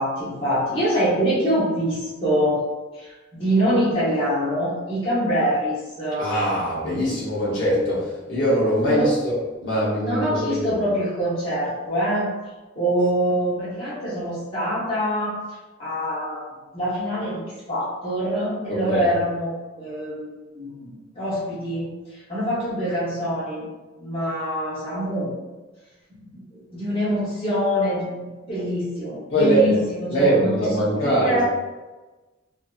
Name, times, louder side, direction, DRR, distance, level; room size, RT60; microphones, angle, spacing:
voice 1, 0.0-2.6 2.9-6.3 8.9-9.1 10.0-12.3 12.7-15.3 15.8-16.4 16.7-17.4 17.7-23.7 24.0-25.3 26.1-31.4, equal, 30° left, -9 dB, 1.1 m, -25 dB
voice 2, 6.2-10.7 18.7-19.1 29.3-29.8 30.1-31.4, right 1 dB, 65° left, -8 dB, 0.9 m, -22 dB
2.7 x 2.5 x 2.3 m, 1.2 s
head